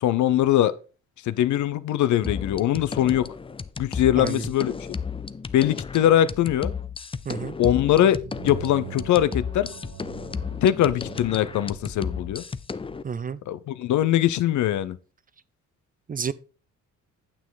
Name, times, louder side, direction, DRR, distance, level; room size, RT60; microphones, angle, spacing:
voice 1, 0.0-0.7 1.3-3.3 3.8-4.8 5.5-6.7 7.6-9.7 10.6-12.4 13.5-15.0, left 12 dB, 70° left, 0.7 m, -22 dB
sound 1, 2.2-13.0, left 5 dB, 20° left, 0.5 m, -34 dB
voice 2, 4.1-4.5 7.2-7.6 13.0-13.4 16.1-16.3, right 6 dB, 30° right, 0.5 m, -30 dB
sound 2, 7.9-12.4, right 10 dB, 65° right, 1.6 m, -43 dB
8.9 x 7.3 x 3.9 m
cardioid pair, 90°, 30 cm